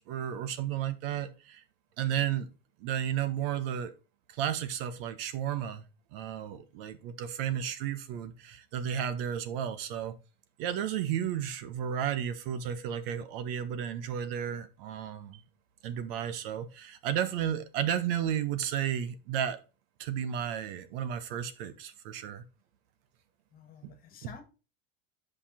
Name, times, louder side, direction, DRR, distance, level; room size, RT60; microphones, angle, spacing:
voice 1, 0.0-1.6 2.0-2.5 2.8-3.9 4.3-5.8 6.1-10.1 10.6-15.4 15.8-19.6 20.0-22.4 23.8-23.9, right 9 dB, 65° right, 12 dB, 1.4 m, -33 dB
voice 2, 23.5-24.4, left 6 dB, 30° left, 7 dB, 1.7 m, -51 dB
8.4 x 5.5 x 4.2 m, 0.31 s
supercardioid pair, 165°, 31 cm